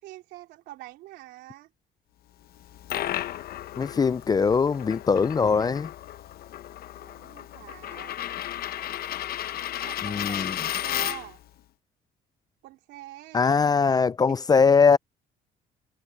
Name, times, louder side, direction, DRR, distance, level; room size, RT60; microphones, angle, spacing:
voice 1, 0.0-1.7 7.0-8.2 9.7-11.4 12.6-13.6 14.3-14.4, right 17 dB, 90° right, 3.5 m, -45 dB
Coin (dropping), 2.5-11.4, left 12 dB, 65° left, 1.0 m, -34 dB
voice 2, 3.8-5.9 10.0-10.5 13.3-15.0, left 5 dB, 25° left, 0.4 m, -21 dB
cardioid pair, 110°, 17 cm